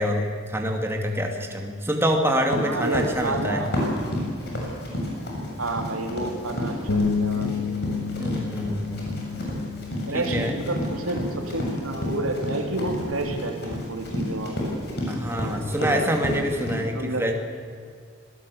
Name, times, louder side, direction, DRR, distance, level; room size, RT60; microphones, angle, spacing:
voice 1, 0.0-3.6 8.2-9.0 10.1-10.5 15.1-17.3, equal, 10° right, 2 dB, 2.3 m, -26 dB
Run, 2.5-16.7, equal, 50° left, 7.2 m, -31 dB
voice 2, 2.6-4.0 5.6-7.7 10.1-14.7 15.8-16.0 16.8-17.3, right 2 dB, 80° right, 3 dB, 3.6 m, -30 dB
Bass guitar, 6.9-13.1, left 5 dB, 80° left, 1.7 m, -31 dB
25.5 x 18.5 x 8.5 m, 2.1 s
head